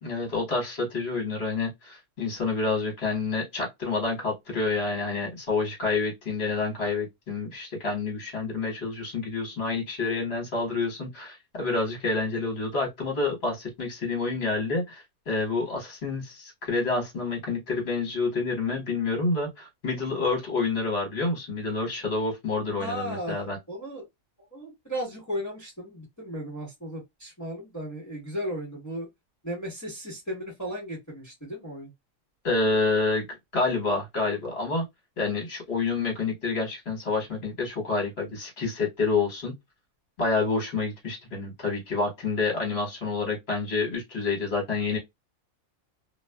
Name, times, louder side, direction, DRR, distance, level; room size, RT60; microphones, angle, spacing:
voice 1, 0.0-23.6 32.4-33.3 33.5-34.8 35.2-39.5 40.2-45.0, left 3 dB, 50° left, 1.4 m, -28 dB
voice 2, 22.8-23.4 23.7-24.1 24.5-29.1 29.4-31.9, equal, 15° left, 1.0 m, -35 dB
2.6 x 2.3 x 2.2 m
omnidirectional pair, 1.5 m